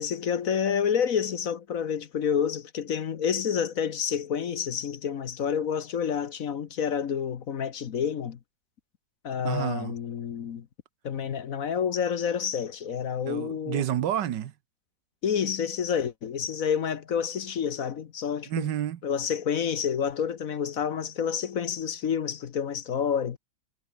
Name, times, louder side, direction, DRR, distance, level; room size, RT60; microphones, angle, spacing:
voice 1, 0.0-8.4 9.2-10.7 11.0-13.8 15.2-18.7 19.0-23.4, left 7 dB, 55° left, 1.3 m, -29 dB
voice 2, 9.4-9.9 13.2-14.5 18.5-19.0, right 11 dB, 80° right, 1.7 m, -29 dB
omnidirectional pair, 1.9 m